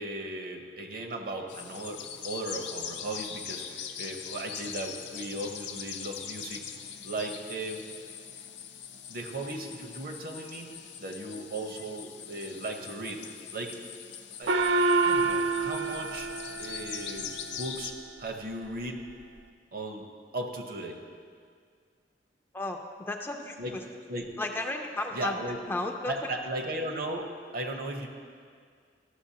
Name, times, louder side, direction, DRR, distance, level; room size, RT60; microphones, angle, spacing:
voice 1, 0.0-6.6 7.0-7.8 9.1-13.3 13.5-13.8 14.4-14.6 15.0-16.3 16.6-17.9 18.2-19.0 19.7-20.1 20.3-21.0 23.6-23.7 24.1-24.3 25.1-25.6 26.1-27.3 27.5-28.1, right 1 dB, 55° right, 4 dB, 0.8 m, -36 dB
sound 1, 1.5-17.9, left 8 dB, 90° left, 0.5 m, -42 dB
Gong, 14.5-17.4, right 3 dB, 75° right, 0.4 m, -27 dB
voice 2, 22.5-23.6 24.4-25.4 25.7-26.1, left 2 dB, 15° left, 3 dB, 0.4 m, -33 dB
13.0 x 6.5 x 2.8 m, 2.1 s
head